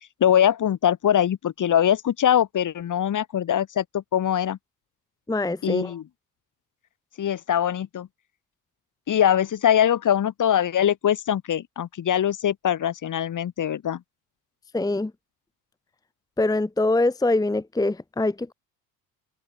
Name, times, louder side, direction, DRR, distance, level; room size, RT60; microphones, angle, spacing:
voice 1, 0.2-4.6 5.6-6.0 7.2-8.1 9.1-14.0, left 10 dB, 40° left, 2.2 m, -22 dB
voice 2, 5.3-5.9 14.7-15.1 16.4-18.5, left 2 dB, 10° left, 1.1 m, -24 dB
hypercardioid pair, 60°, 47 cm